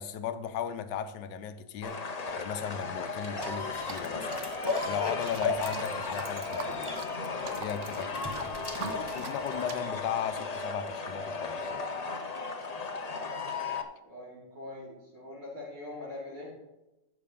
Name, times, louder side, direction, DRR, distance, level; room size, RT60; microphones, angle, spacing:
voice 1, 0.0-2.0 2.3-4.3 4.8-6.9 7.6-8.3 9.1-11.9, left 8 dB, 75° left, 1.4 m, -36 dB
sound 1, 1.8-13.8, left 4 dB, 50° left, 0.4 m, -36 dB
sound 2, 3.4-9.8 10.6-10.7, left 3 dB, 20° left, 0.7 m, -36 dB
sound 3, 3.7-9.8, right 7 dB, 60° right, 0.8 m, -45 dB
voice 2, 14.0-16.6, left 2 dB, 85° right, 5.1 m, -43 dB
14.0 x 5.9 x 5.3 m
omnidirectional pair, 1.9 m